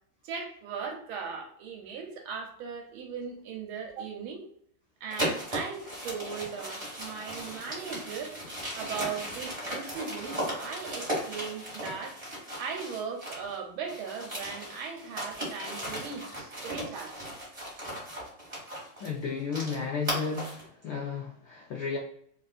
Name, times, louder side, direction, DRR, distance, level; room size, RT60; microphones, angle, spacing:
voice 1, 0.2-4.4 5.0-8.4 8.7-12.2 12.6-17.3, right 6 dB, 80° right, 2 dB, 1.4 m, -38 dB
sound 1, 5.1-13.5 13.8-20.7, equal, 20° right, 1.1 m, -37 dB
voice 2, 19.0-22.0, left 5 dB, 90° left, -1 dB, 0.8 m, -33 dB
3.5 x 2.5 x 2.3 m, 0.65 s
omnidirectional pair, 2.4 m